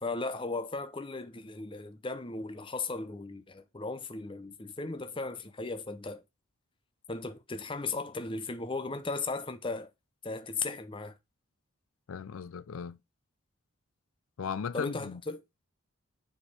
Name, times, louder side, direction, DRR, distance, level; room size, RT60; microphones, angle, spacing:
voice 1, 0.0-6.2 7.1-9.9 10.2-11.2 14.7-15.4, left 3 dB, 25° left, 0.7 m, -36 dB
voice 2, 12.1-13.0 14.4-15.2, left 6 dB, 80° left, 0.4 m, -37 dB
7.2 x 4.6 x 4.8 m
head